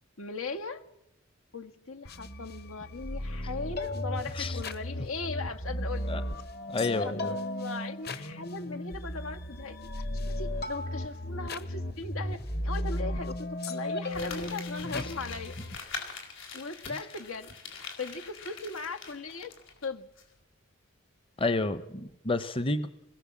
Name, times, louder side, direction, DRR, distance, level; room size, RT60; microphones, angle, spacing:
voice 1, 0.2-0.8 1.5-6.1 6.8-15.9 16.5-17.5 18.0-19.5 19.8-20.1, left 3 dB, 85° left, 6 dB, 1.8 m, -39 dB
experimental electronic beat, 2.0-15.8, left 1 dB, 50° left, 1.5 m, -35 dB
voice 2, 6.7-7.3 14.9-15.1 21.4-22.9, left 2 dB, 25° left, 13 dB, 0.9 m, -30 dB
Crumpling crinkling, 14.1-19.9 20.2-20.3, left 4 dB, 65° left, 4.8 m, -43 dB
26.5 x 21.0 x 7.4 m, 0.90 s
head